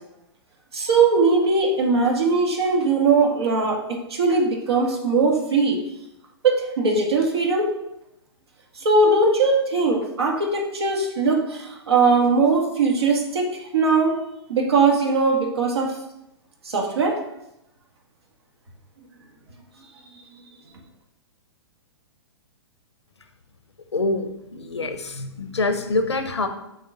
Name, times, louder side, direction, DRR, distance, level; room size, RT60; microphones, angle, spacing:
voice 1, 0.7-5.8 6.4-7.7 8.8-14.2 14.5-16.0 16.6-17.2, right 3 dB, 65° right, 1 dB, 2.0 m, -20 dB
voice 2, 23.9-26.5, left 3 dB, 80° left, 8 dB, 1.0 m, -25 dB
6.8 x 3.8 x 6.4 m, 0.85 s
figure-of-eight pair, 115°, 14 cm